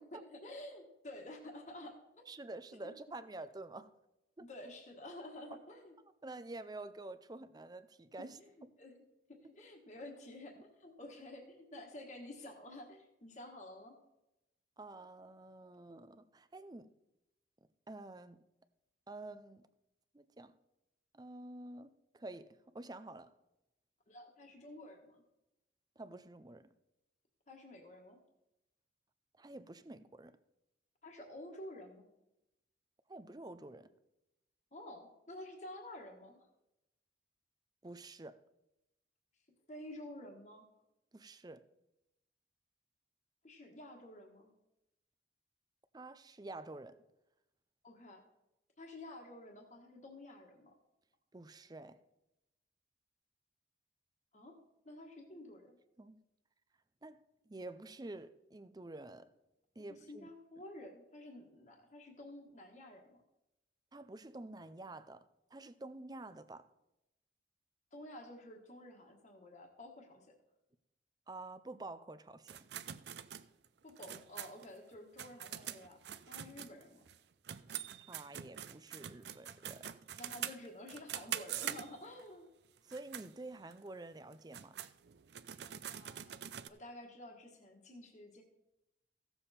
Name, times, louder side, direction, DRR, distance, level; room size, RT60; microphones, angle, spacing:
voice 1, 0.1-2.2 4.4-5.9 8.2-8.5 8.8-8.9 9.3-14.0 24.1-25.2 27.5-28.2 31.0-32.1 34.7-36.5 39.7-40.6 43.4-44.5 47.8-48.2 48.8-50.7 54.3-54.6 54.8-55.8 59.9-63.2 67.9-70.3 73.8-76.0 76.3-77.0 80.2-82.5 85.9-88.4, left 1 dB, 45° left, 1.5 m, -51 dB
voice 2, 2.3-3.9 4.4-4.5 6.2-8.4 14.8-16.9 17.9-18.4 19.1-19.6 20.1-20.5 21.1-23.3 26.0-26.7 29.4-30.4 33.1-33.9 37.8-38.4 41.1-41.6 45.9-47.0 51.3-52.0 56.0-56.2 57.0-59.3 59.8-60.3 63.9-66.7 71.3-72.7 78.1-80.0 82.8-84.8, right 2 dB, 25° right, 0.5 m, -49 dB
sound 1, 72.5-77.2 77.4-82.2 82.8-83.3 83.7-83.8 84.3-86.7, right 10 dB, 70° right, 0.5 m, -44 dB
15.5 x 7.0 x 4.2 m
head